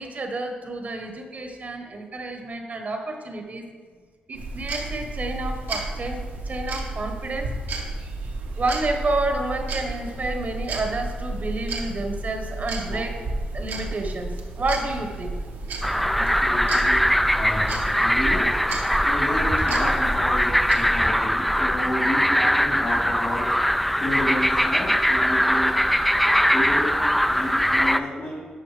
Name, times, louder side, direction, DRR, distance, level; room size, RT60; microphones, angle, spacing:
voice 1, 0.0-3.6 4.3-7.5 8.6-13.2 13.5-15.4, right 2 dB, 50° right, 5 dB, 1.0 m, -30 dB
sound 1, 4.3-20.7, right 2 dB, 90° right, 1.1 m, -32 dB
sound 2, 15.8-28.0, equal, 5° left, 0.3 m, -21 dB
voice 2, 16.2-17.1 17.3-17.7 18.0-18.6 19.1-23.5 24.0-25.8 26.3-28.5, left 1 dB, 70° left, -10 dB, 2.1 m, -31 dB
11.0 x 5.4 x 3.3 m, 1.5 s
supercardioid pair, 55°, 3 cm